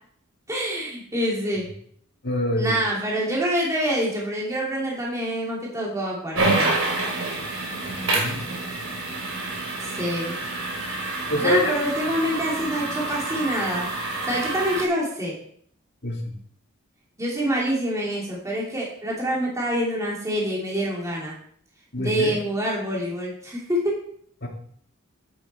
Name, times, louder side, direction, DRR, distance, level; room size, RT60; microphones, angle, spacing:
voice 1, 0.5-1.6 2.6-6.8 9.8-10.4 11.4-15.3 17.2-21.4 21.9-23.9, equal, 15° right, -4 dB, 3.0 m, -26 dB
voice 2, 2.2-2.8 7.9-8.5 11.3-11.8 16.0-16.3 21.9-22.4 24.4-24.5, equal, 50° left, 1 dB, 2.2 m, -26 dB
sound 1, 6.3-14.9, right 2 dB, 75° right, 2.9 m, -28 dB
9.2 x 8.5 x 4.4 m, 0.62 s
head